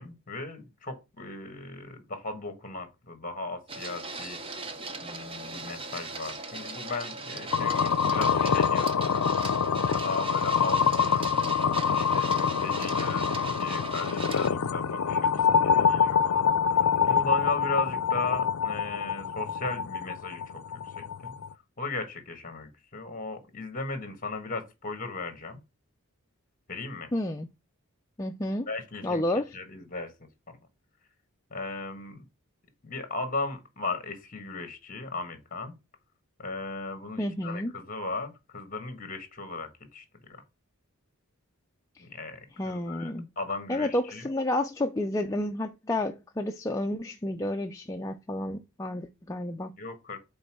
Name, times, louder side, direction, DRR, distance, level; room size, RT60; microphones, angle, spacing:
voice 1, 0.0-4.4 5.0-11.3 11.9-21.4 21.8-25.6 26.7-27.1 28.7-29.2 29.5-30.1 30.5-30.6 31.5-32.2 32.8-35.7 36.4-40.0 42.0-44.3 49.8-50.2, left 3 dB, 40° left, 1.4 m, -37 dB
Printer, 3.7-14.5, right 3 dB, 25° right, 0.6 m, -39 dB
sound 1, 7.5-21.5, left 6 dB, 80° left, 0.5 m, -26 dB
voice 2, 27.1-27.5 28.2-28.7 29.0-29.5 37.2-37.7 42.0-42.1 42.6-43.3 43.7-49.7, left 1 dB, 15° left, 0.4 m, -30 dB
5.3 x 4.3 x 6.0 m
head